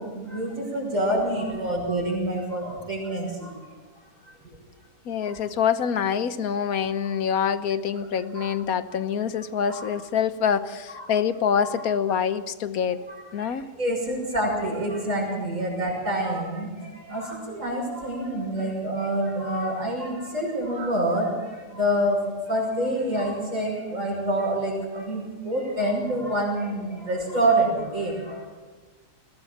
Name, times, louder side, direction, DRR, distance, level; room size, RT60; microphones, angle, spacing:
voice 1, 0.0-3.5 8.4-8.5 9.7-9.9 10.9-11.0 11.6-11.8 13.8-16.7 17.1-21.3 21.7-22.2 22.5-28.4, right 1 dB, 50° right, -5 dB, 6.9 m, -26 dB
voice 2, 5.0-13.0 13.3-13.7, left 7 dB, 65° left, 12 dB, 1.4 m, -25 dB
21.0 x 17.5 x 7.4 m, 1.3 s
omnidirectional pair, 1.7 m